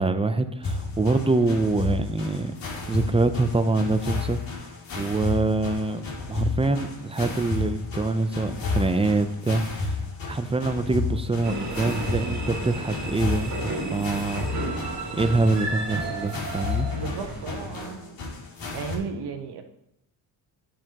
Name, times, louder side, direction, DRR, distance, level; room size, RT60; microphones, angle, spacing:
voice 1, 0.0-2.5 2.9-4.7 5.0-10.0 10.2-14.5 15.1-16.9, right 3 dB, 10° right, 10 dB, 0.6 m, -25 dB
sound 1, 0.6-19.0, left 3 dB, 65° left, 2.9 m, -32 dB
sound 2, 11.4-17.7, right 2 dB, 35° right, 2.0 m, -33 dB
voice 2, 16.9-18.0 18.7-19.6, right 5 dB, 55° right, 5 dB, 1.3 m, -34 dB
10.0 x 7.6 x 3.0 m, 0.78 s
cardioid pair, 95°, 47 cm